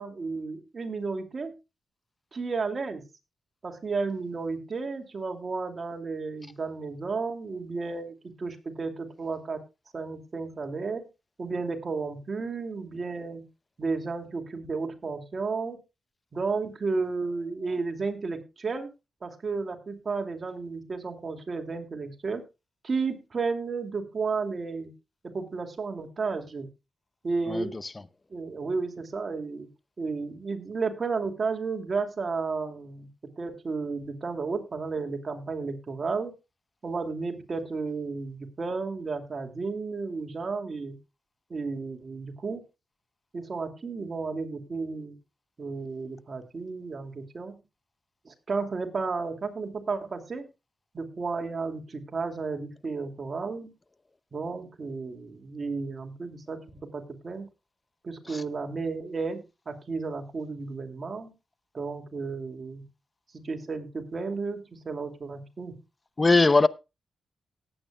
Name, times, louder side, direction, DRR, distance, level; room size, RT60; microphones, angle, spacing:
voice 1, 0.0-1.5 2.3-3.0 3.6-9.6 9.9-11.1 11.4-13.5 13.8-15.8 16.3-18.9 19.2-22.4 22.8-24.9 25.2-26.7 27.2-27.8 28.3-29.7 30.0-33.1 33.4-36.3 36.8-41.0 41.5-42.6 43.3-45.2 45.6-47.6 48.2-50.4 50.9-53.7 54.3-56.6 56.9-57.5 58.0-61.3 61.7-62.9 63.4-65.8, right 4 dB, 50° right, 2.6 m, -33 dB
voice 2, 27.5-27.8 58.3-58.4 66.2-66.7, left 3 dB, 30° left, 0.7 m, -20 dB
18.5 x 8.8 x 2.3 m
cardioid pair, 60°, 0 cm